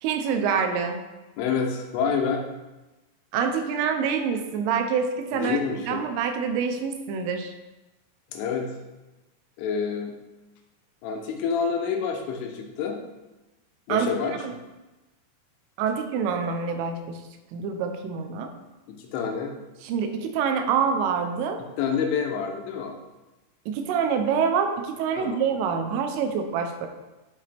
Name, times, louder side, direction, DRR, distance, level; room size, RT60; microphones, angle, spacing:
voice 1, 0.0-1.0 3.3-5.6 5.9-7.5 13.9-14.5 15.8-17.2 17.5-18.5 19.8-21.6 23.7-26.9, right 6 dB, 85° right, 5 dB, 3.3 m, -26 dB
voice 2, 1.4-2.4 5.3-6.0 8.3-8.7 9.6-10.1 11.0-13.0 13.9-14.3 18.9-19.5 21.8-22.9 25.2-25.4, left 6 dB, 80° left, 2 dB, 3.4 m, -27 dB
12.0 x 5.5 x 3.5 m, 1.1 s
omnidirectional pair, 5.7 m